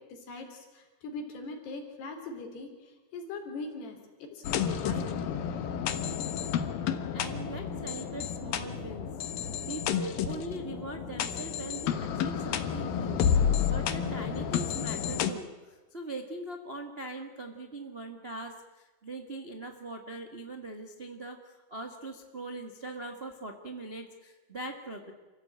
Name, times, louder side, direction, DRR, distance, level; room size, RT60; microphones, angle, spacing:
voice 1, 0.0-5.1, left 3 dB, 85° left, 2 dB, 5.3 m, -41 dB
sound 1, 4.4-15.3, left 8 dB, 70° left, 2.9 m, -31 dB
voice 2, 7.1-9.1 9.3-25.1, right 2 dB, 80° right, 4 dB, 0.5 m, -41 dB
28.5 x 15.5 x 8.8 m, 1.3 s
omnidirectional pair, 4.6 m